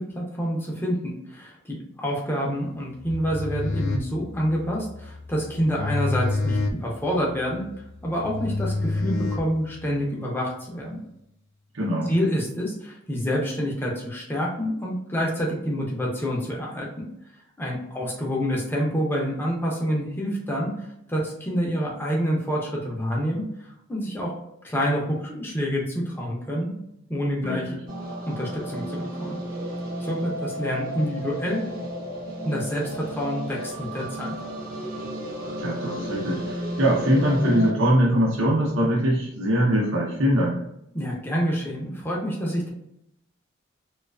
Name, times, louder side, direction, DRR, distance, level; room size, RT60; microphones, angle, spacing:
voice 1, 0.0-7.7 8.0-11.0 12.1-16.9 17.6-24.3 24.6-26.7 27.1-27.7 28.3-29.4 30.0-31.6 32.4-34.4 40.9-42.7, equal, 10° left, -3 dB, 0.5 m, -27 dB
sound 1, 3.0-10.0, left 2 dB, 75° left, 0.3 m, -29 dB
voice 2, 11.7-12.1 27.4-27.8 35.6-40.6, equal, 90° right, -5 dB, 0.8 m, -22 dB
sound 2, 27.9-37.7, equal, 45° right, 0.6 m, -33 dB
2.4 x 2.3 x 2.2 m, 0.79 s
head